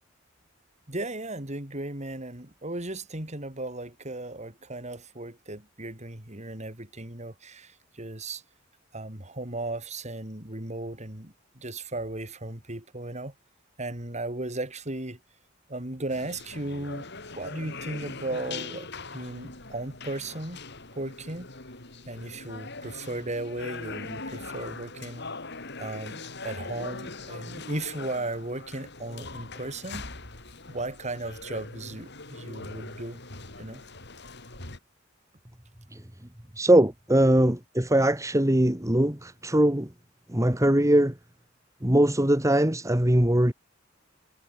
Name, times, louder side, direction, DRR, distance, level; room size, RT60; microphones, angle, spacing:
voice 1, 0.9-8.4 8.9-13.3 13.8-15.2 15.7-17.1 17.4-20.6 20.9-21.5 22.1-25.3 25.8-30.0 30.7-33.2 33.6-33.8, right 2 dB, 35° right, 4.5 m, -36 dB
sound 1, 16.1-34.8, left 3 dB, 60° left, 7.1 m, -41 dB
voice 2, 36.6-39.9 40.3-41.1 41.8-43.5, right 1 dB, 15° right, 2.3 m, -21 dB
head